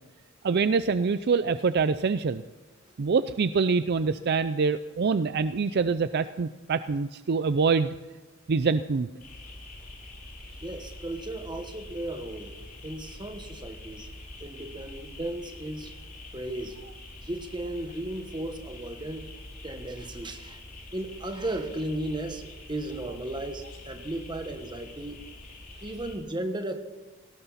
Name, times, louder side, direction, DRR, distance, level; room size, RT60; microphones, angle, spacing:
voice 1, 0.4-2.4 3.0-7.9 8.5-9.1, right 5 dB, 55° right, 12 dB, 0.4 m, -25 dB
sound 1, 9.2-26.2, left 2 dB, 45° left, 3.5 m, -45 dB
voice 2, 10.6-14.1 14.4-15.9 16.3-16.8 17.2-19.3 19.6-20.6 20.9-25.3 25.8-26.8, right 1 dB, 20° right, 6 dB, 1.4 m, -35 dB
18.0 x 18.0 x 4.2 m, 1.2 s
head